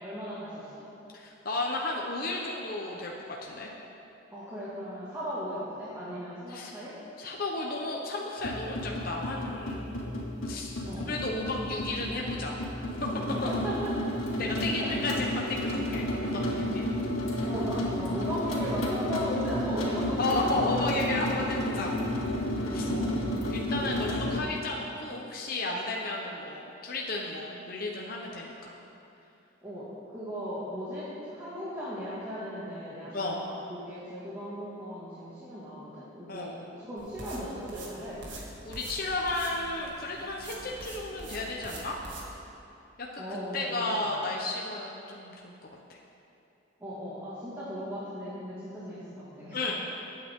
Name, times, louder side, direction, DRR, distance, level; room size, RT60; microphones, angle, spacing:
voice 1, 0.0-0.9 4.3-6.9 10.8-11.1 13.3-14.2 14.8-14.9 17.4-20.6 22.7-23.2 23.9-24.1 29.6-29.9 30.1-38.3 43.2-44.1 46.8-49.8, equal, 15° right, -11 dB, 2.1 m, -37 dB
voice 2, 1.1-3.1 3.4-3.7 6.5-6.7 7.2-10.0 10.4-10.8 11.1-12.6 14.4-16.9 20.2-21.9 22.7-22.9 23.5-28.7 33.1-33.4 36.3-36.6 38.3-42.0 43.0-45.5 45.9-46.0 49.5-49.8, left 2 dB, 45° left, -2 dB, 0.9 m, -33 dB
sound 1, 8.4-24.4, left 1 dB, 80° left, 2.4 m, -31 dB
sound 2, 37.0-42.3, right 2 dB, 60° right, 2.2 m, -45 dB
22.0 x 8.9 x 3.7 m, 2.8 s
head